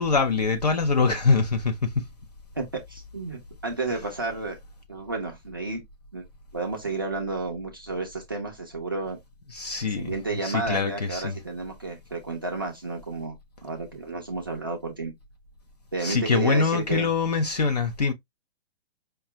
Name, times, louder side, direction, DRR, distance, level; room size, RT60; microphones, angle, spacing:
voice 1, 0.0-2.0 9.5-10.1 10.4-11.3 16.0-18.1, left 4 dB, 40° left, 0.5 m, -24 dB
voice 2, 2.6-4.6 4.9-5.8 6.1-6.2 6.5-9.2 9.9-13.3 13.6-15.1 15.9-17.1, right 3 dB, 20° right, 0.4 m, -31 dB
5.0 x 2.2 x 2.7 m
hypercardioid pair, 175°, 33 cm